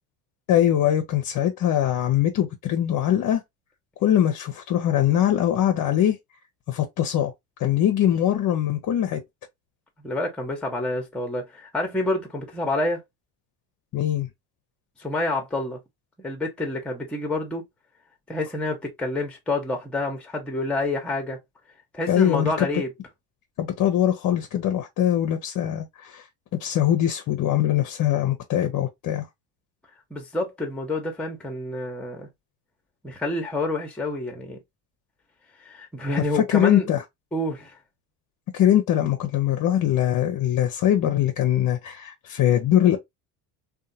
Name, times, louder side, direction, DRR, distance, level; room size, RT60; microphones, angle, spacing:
voice 1, 0.5-3.4 4.0-6.2 6.7-7.3 7.6-9.2 13.9-14.3 22.1-22.7 23.6-26.2 26.6-29.3 36.3-37.0 38.5-43.0, left 11 dB, 40° left, 0.6 m, -22 dB
voice 2, 10.0-13.0 15.0-15.8 16.2-17.6 18.3-21.4 21.9-22.9 30.1-32.3 33.0-34.6 35.6-36.9 37.3-37.8, left 2 dB, ahead, 0.8 m, -28 dB
2.7 x 2.3 x 2.6 m
supercardioid pair, 80°, 50 cm